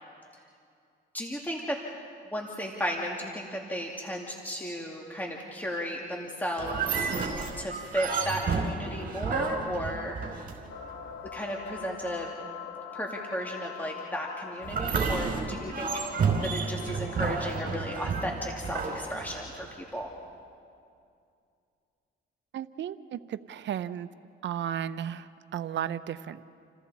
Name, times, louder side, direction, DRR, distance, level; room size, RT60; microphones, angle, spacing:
voice 1, 1.1-1.8 2.3-7.1 7.5-10.2 11.3-12.3 12.9-16.0 16.4-20.1, equal, 10° left, -1 dB, 2.4 m, -34 dB
sound 1, 6.6-10.9 14.6-19.7, right 5 dB, 45° right, 5.0 m, -31 dB
sound 2, 10.7-19.5, left 8 dB, 85° left, 2.7 m, -44 dB
voice 2, 22.5-24.1 24.4-26.4, right 9 dB, 65° right, 12 dB, 0.9 m, -34 dB
30.0 x 28.5 x 4.2 m, 2.4 s
cardioid pair, 90°, 20 cm